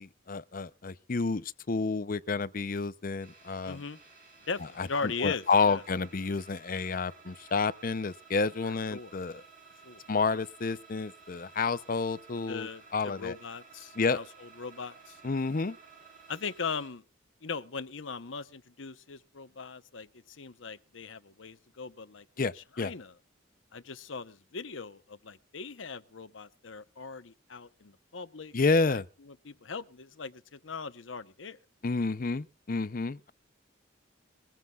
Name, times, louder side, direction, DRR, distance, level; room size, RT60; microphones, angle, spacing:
voice 1, 0.0-3.8 4.8-9.4 10.1-13.3 14.0-14.2 15.2-15.8 22.4-22.9 28.5-29.1 31.8-33.3, left 4 dB, 45° left, 0.6 m, -30 dB
sound 1, 3.2-16.9, right 5 dB, 45° right, 7.8 m, -55 dB
voice 2, 3.6-4.0 4.5-5.8 8.6-9.1 9.8-10.0 12.5-15.2 16.3-17.0 17.4-23.1 23.7-28.5 28.9-31.6, left 5 dB, 90° left, 0.9 m, -39 dB
21.5 x 15.0 x 2.4 m
head